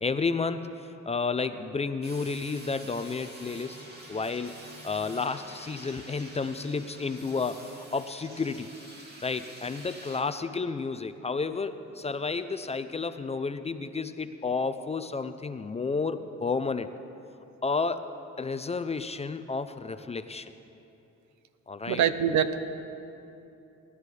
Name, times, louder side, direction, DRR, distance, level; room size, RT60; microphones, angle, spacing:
voice 1, 0.0-3.8 4.1-4.6 4.8-8.7 9.2-16.9 17.6-18.1 18.4-20.5 21.7-22.0, left 4 dB, 20° left, 10 dB, 0.4 m, -31 dB
Grinder Hand type Small large tank, 2.0-10.2, right 1 dB, 35° right, 2.3 m, -48 dB
voice 2, 21.9-22.7, right 8 dB, 70° right, 11 dB, 0.7 m, -25 dB
18.5 x 11.0 x 3.3 m, 2.8 s
cardioid pair, 90°, 30 cm